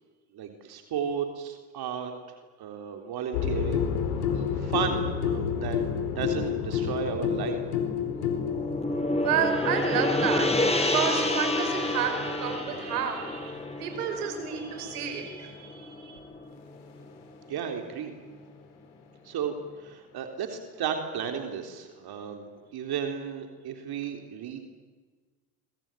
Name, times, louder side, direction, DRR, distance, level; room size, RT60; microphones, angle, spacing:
voice 1, 0.3-2.1 2.6-3.9 4.2-5.8 6.1-7.6 17.5-18.1 19.2-24.6, right 7 dB, 55° right, 5 dB, 3.8 m, -34 dB
sound 1, 3.3-15.2 16.6-16.7, left 7 dB, 90° left, 4.5 m, -31 dB
Gong, 8.0-16.4, left 2 dB, 15° left, 6.4 m, -29 dB
voice 2, 9.2-16.2, right 7 dB, 90° right, 8 dB, 5.2 m, -31 dB
27.0 x 24.0 x 9.2 m, 1.4 s
hypercardioid pair, 75°, 44 cm